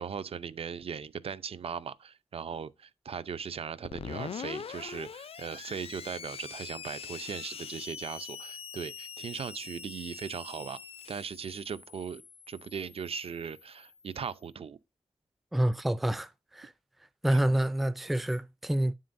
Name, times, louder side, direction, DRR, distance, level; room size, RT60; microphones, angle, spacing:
voice 1, 0.0-10.8 11.1-12.2 12.5-14.8 17.3-17.4, right 6 dB, 65° right, 0.6 m, -38 dB
Screech, 3.8-14.3, left 7 dB, 65° left, 0.5 m, -44 dB
voice 2, 15.5-16.7 17.2-18.9, right 1 dB, ahead, 0.4 m, -28 dB
9.5 x 7.5 x 2.6 m
wide cardioid pair, 145°, 10 cm